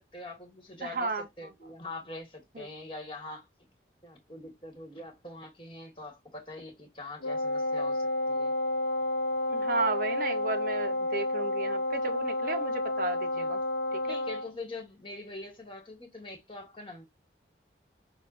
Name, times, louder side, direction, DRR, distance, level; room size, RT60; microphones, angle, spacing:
voice 1, 0.0-3.5 4.0-8.5 13.3-13.5 14.0-17.0, left 2 dB, 30° left, 1.6 m, -43 dB
voice 2, 0.8-1.5 2.5-2.7 9.5-13.6 13.9-14.0, right 3 dB, 50° right, 0.6 m, -34 dB
Wind instrument woodwind instrument, 7.2-14.5, left 1 dB, 70° left, 0.7 m, -30 dB
6.3 x 2.2 x 2.5 m
head